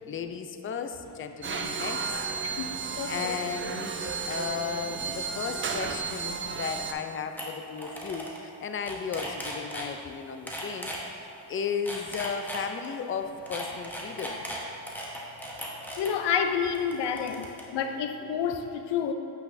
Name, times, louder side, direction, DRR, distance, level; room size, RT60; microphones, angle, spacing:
voice 1, 0.1-2.2 3.0-14.4, left 6 dB, 30° left, 8 dB, 0.4 m, -35 dB
sound 1, 1.4-6.9, right 5 dB, 30° right, 0.4 m, -33 dB
voice 2, 2.4-3.4 16.0-19.1, left 7 dB, 80° left, 7 dB, 0.6 m, -29 dB
sound 2, 7.0-7.1 7.4-7.5 7.8-8.4 8.7-9.9 10.5-11.0 11.7-12.9 13.5-16.1 16.7-17.6, equal, 5° left, 1.0 m, -37 dB
8.1 x 5.7 x 2.6 m, 2.8 s
cardioid pair, 75°, 42 cm